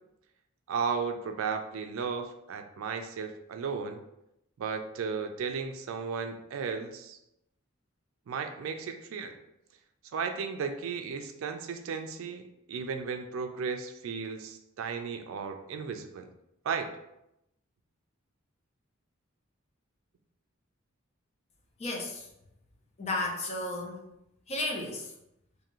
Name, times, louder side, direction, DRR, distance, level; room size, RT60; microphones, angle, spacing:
voice 1, 0.7-4.0 4.6-7.2 8.3-9.4 10.1-16.3 16.6-16.9, right 5 dB, 75° right, 6 dB, 0.3 m, -35 dB
voice 2, 21.8-22.3 23.0-24.0 24.5-25.1, left 2 dB, 30° left, 0 dB, 0.4 m, -33 dB
2.6 x 2.5 x 2.9 m, 0.83 s
head